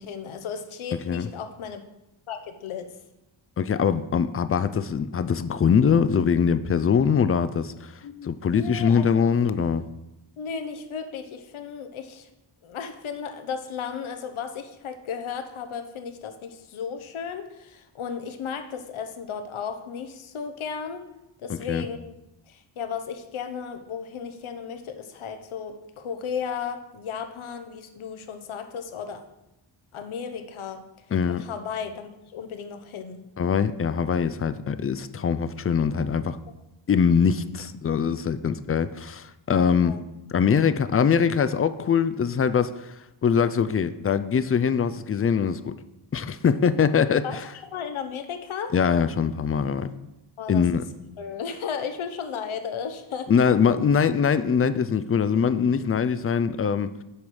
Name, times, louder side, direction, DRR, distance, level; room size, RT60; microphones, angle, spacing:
voice 1, 0.0-1.8 2.3-2.9 8.0-9.3 10.4-12.3 12.6-21.0 21.4-22.1 22.5-29.2 29.9-30.8 31.3-33.2 39.8-40.0 47.2-47.4 47.6-48.8 50.4-50.6 51.2-53.3, left 6 dB, 75° left, 7 dB, 1.0 m, -34 dB
voice 2, 3.6-7.9 8.2-9.8 21.5-21.9 31.1-31.4 33.4-36.4 36.9-40.0 40.3-42.9 43.2-45.7 46.1-47.4 48.7-49.9 50.5-50.8 53.3-57.0, left 6 dB, 30° left, 13 dB, 0.4 m, -23 dB
7.1 x 4.9 x 6.2 m, 0.93 s
wide cardioid pair, 120°, 49 cm